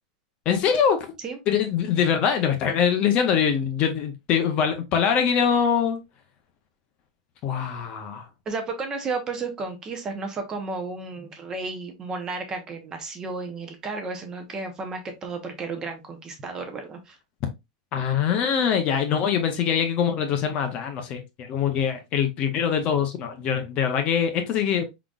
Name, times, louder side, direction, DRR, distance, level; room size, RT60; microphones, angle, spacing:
voice 1, 0.5-1.1 1.5-6.0 7.4-8.3 17.9-24.9, left 7 dB, 25° left, 0.5 m, -23 dB
voice 2, 8.5-17.2, right 3 dB, 15° right, 0.7 m, -33 dB
4.8 x 3.8 x 2.3 m
supercardioid pair, 180°, 4 cm